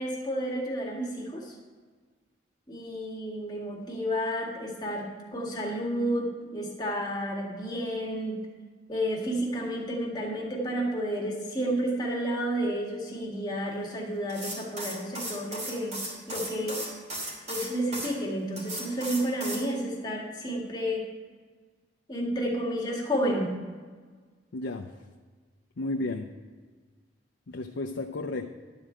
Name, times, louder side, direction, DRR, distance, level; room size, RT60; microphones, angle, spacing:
voice 1, 0.0-1.5 2.7-8.4 8.9-16.0 16.3-16.8 17.5-21.1 22.1-23.5, equal, 25° left, -2 dB, 1.9 m, -31 dB
sound 1, 14.3-18.1 18.6-19.6, right 1 dB, 40° right, 3.1 m, -36 dB
voice 2, 24.5-24.9 25.8-26.3 27.5-28.5, left 2 dB, 85° left, 3 dB, 0.6 m, -33 dB
11.5 x 5.0 x 7.6 m, 1.5 s
head